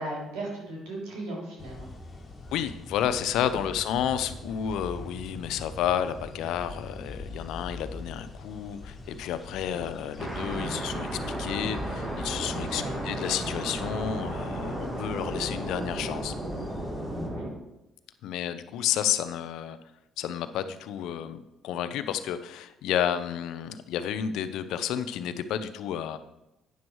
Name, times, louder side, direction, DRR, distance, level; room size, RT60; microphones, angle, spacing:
voice 1, 0.0-1.9 9.7-9.8 12.7-13.0 17.1-17.5, right 1 dB, 85° right, -2 dB, 3.3 m, -37 dB
sound 1, 1.6-17.3, left 2 dB, 30° left, 1.8 m, -44 dB
voice 2, 2.5-16.3 18.2-19.8 20.2-26.2, left 9 dB, 80° left, 11 dB, 0.6 m, -31 dB
sound 2, 10.2-17.5, right 1 dB, 25° right, 1.9 m, -33 dB
9.3 x 6.2 x 4.7 m, 0.91 s
cardioid pair, 90°, 0 cm